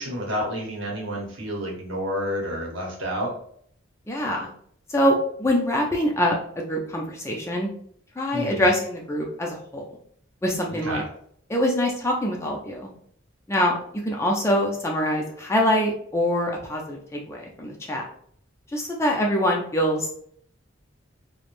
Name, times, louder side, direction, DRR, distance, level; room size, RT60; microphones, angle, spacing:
voice 1, 0.0-3.3 8.3-8.7 10.7-11.0, equal, 75° right, -1 dB, 0.8 m, -30 dB
voice 2, 4.1-4.5 4.9-6.3 6.7-7.7 8.2-9.8 10.4-11.0 11.5-12.9 13.5-13.8 14.0-18.0 18.7-20.1, equal, 15° left, -1 dB, 0.4 m, -24 dB
3.0 x 2.0 x 2.5 m, 0.62 s
head